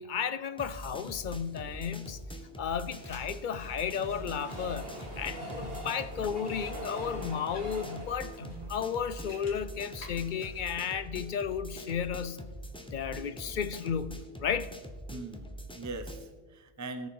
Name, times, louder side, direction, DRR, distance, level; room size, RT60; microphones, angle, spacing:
voice 1, 0.0-2.2 2.6-12.4 12.9-14.7, left 7 dB, 55° left, 14 dB, 0.6 m, -34 dB
sound 1, 0.6-16.3, equal, 5° left, 0.9 m, -44 dB
sound 2, 2.7-10.8, equal, 80° left, 2.5 m, -53 dB
Train, 2.8-10.0 10.5-10.6 10.8-10.9, equal, 60° right, 2.4 m, -43 dB
voice 2, 15.1-17.1, right 3 dB, 20° right, 9 dB, 0.6 m, -41 dB
18.0 x 6.3 x 4.6 m, 1.4 s
omnidirectional pair, 1.1 m